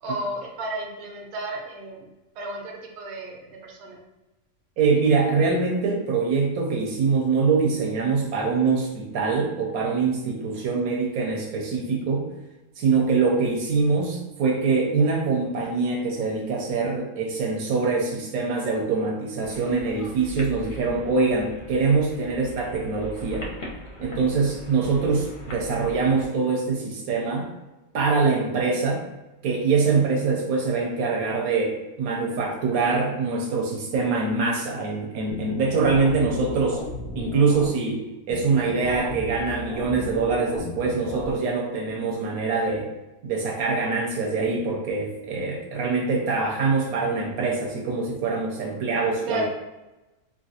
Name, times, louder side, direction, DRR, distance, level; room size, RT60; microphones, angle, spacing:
voice 1, 0.0-2.1 2.4-4.0 49.3-49.5, right 1 dB, 60° right, 0 dB, 0.8 m, -33 dB
voice 2, 4.8-12.3 12.8-23.5 24.0-27.5 27.9-29.0 29.4-36.8 37.2-38.0 38.3-42.9 43.2-49.5, right 4 dB, 75° right, -1 dB, 1.0 m, -24 dB
sound 1, 19.4-26.3, equal, 60° left, 0.5 m, -41 dB
sound 2, 35.3-37.7 38.3-41.3, left 2 dB, 90° left, 1.2 m, -35 dB
2.9 x 2.4 x 2.7 m, 1.0 s
omnidirectional pair, 1.6 m